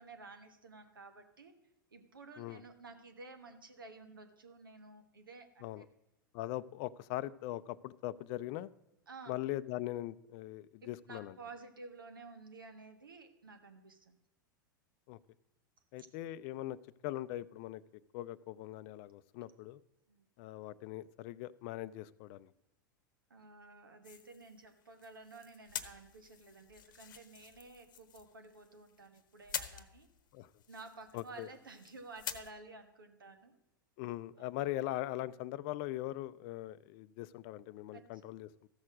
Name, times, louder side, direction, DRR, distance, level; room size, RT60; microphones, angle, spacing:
voice 1, 0.0-1.5 1.9-5.8 9.1-9.3 10.8-14.2 16.0-16.1 20.1-20.2 23.3-30.1 30.7-33.6 34.4-34.5 37.9-38.2, right 3 dB, 85° right, 7 dB, 1.3 m, -53 dB
voice 2, 6.3-8.7 9.3-11.4 15.1-15.2 15.9-16.8 17.0-17.8 18.1-19.8 20.4-22.5 30.3-30.5 31.1-31.5 34.0-38.5, left 15 dB, 50° left, 18 dB, 0.5 m, -41 dB
sound 1, 24.0-32.5, left 9 dB, 70° left, 0.9 m, -47 dB
14.0 x 6.4 x 6.2 m, 0.87 s
hypercardioid pair, 90°, 11 cm